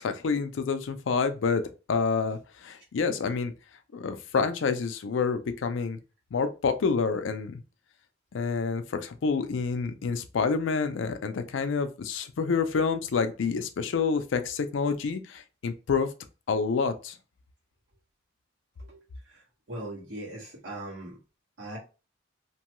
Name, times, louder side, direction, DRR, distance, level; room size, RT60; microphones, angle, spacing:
voice 1, 0.0-1.6 1.9-3.5 3.9-6.0 6.3-7.6 8.3-16.1 16.5-17.2, left 5 dB, 85° left, 0.4 m, -28 dB
voice 2, 19.7-21.2 21.6-21.8, right 1 dB, 75° right, 1.4 m, -39 dB
2.9 x 2.2 x 2.9 m
head